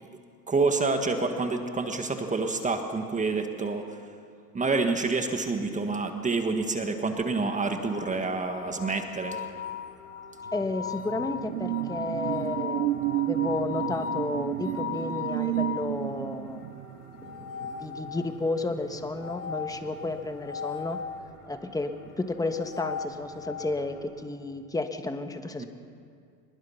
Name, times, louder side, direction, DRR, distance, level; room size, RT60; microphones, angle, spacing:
voice 1, 0.5-4.0 4.5-9.4 25.6-25.7, right 3 dB, 15° right, 5 dB, 1.6 m, -28 dB
sound 1, 7.6-24.0, left 1 dB, 80° left, 7.3 m, -52 dB
sound 2, 7.8-15.9 17.2-18.5 19.2-21.2 22.4-23.7, left 7 dB, 30° left, 1.4 m, -37 dB
voice 2, 10.5-16.6 17.3-21.0 21.5-25.7, left 2 dB, 10° left, 7 dB, 1.3 m, -32 dB
sound 3, 10.5-19.5 19.9-20.1, right 16 dB, 75° right, 0.7 m, -32 dB
23.5 x 21.0 x 5.8 m, 2.3 s
supercardioid pair, 115°, 47 cm